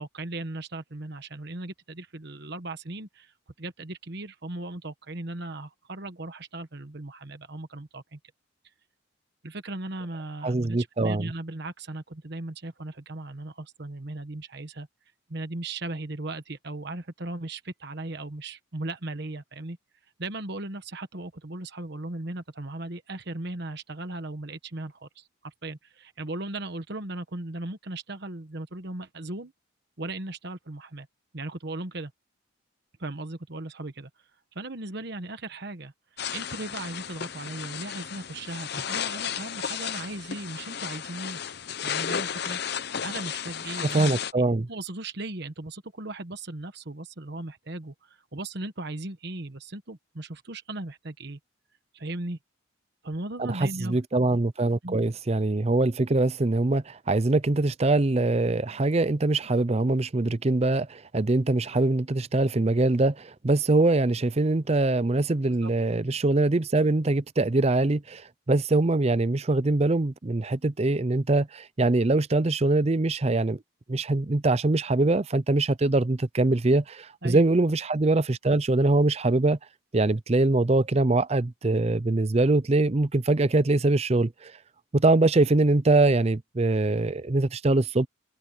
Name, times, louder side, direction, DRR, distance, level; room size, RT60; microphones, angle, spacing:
voice 1, 0.0-8.2 9.4-14.9 15.3-19.8 20.2-29.5 30.0-31.1 31.3-32.1 33.0-34.1 34.5-41.4 41.8-42.6 43.0-51.4 51.9-52.4 53.0-54.0 54.8-55.0 65.6-65.7 77.2-77.5, right 2 dB, 55° right, 1.2 m, -37 dB
voice 2, 10.4-11.3 43.9-44.7 53.4-68.2 68.5-73.6 73.9-79.6 79.9-84.5 84.9-88.1, right 2 dB, 30° right, 0.5 m, -23 dB
sound 1, 36.2-44.3, left 8 dB, 50° left, 0.8 m, -33 dB
head